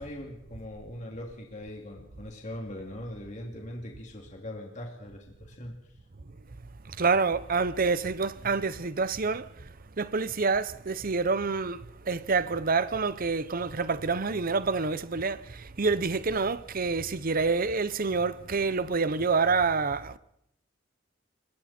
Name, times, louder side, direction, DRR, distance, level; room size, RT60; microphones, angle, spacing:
voice 1, 0.0-5.9, left 1 dB, 40° left, 2.9 m, -41 dB
voice 2, 7.0-9.5 10.0-20.2, right 4 dB, 45° right, 0.8 m, -27 dB
26.0 x 22.5 x 4.4 m
head